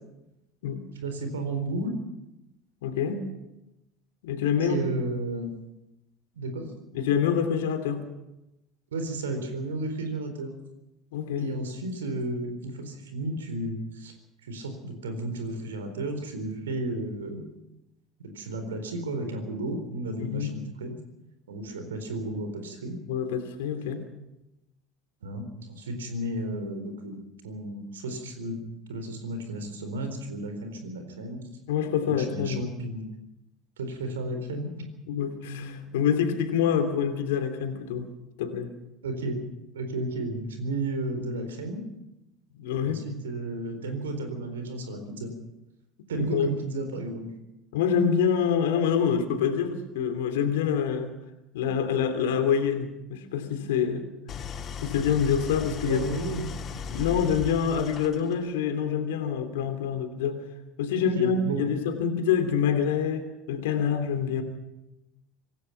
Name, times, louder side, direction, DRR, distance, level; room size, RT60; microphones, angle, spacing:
voice 1, 1.0-2.0 4.6-5.5 6.3-6.7 8.9-10.5 11.4-14.1 14.4-17.5 18.2-21.0 21.5-23.0 25.2-28.6 28.9-31.4 32.3-33.1 33.8-34.8 39.0-39.4 39.7-41.8 42.8-45.3 46.1-47.3 55.8-56.5 61.2-61.7, right 2 dB, 75° right, 7 dB, 4.2 m, -33 dB
voice 2, 2.8-3.3 4.2-4.9 6.9-8.1 11.1-11.5 20.2-20.5 23.1-24.0 31.7-32.7 35.1-38.1 38.4-38.7 42.5-43.0 46.1-46.5 47.7-51.1 51.5-54.1 54.8-56.3 56.9-60.4 60.8-64.4, left 7 dB, 65° left, 7 dB, 3.0 m, -26 dB
Idling, 54.3-58.5, left 6 dB, 40° left, 2.0 m, -37 dB
25.5 x 18.0 x 5.9 m, 0.92 s
figure-of-eight pair, 70°, 0 cm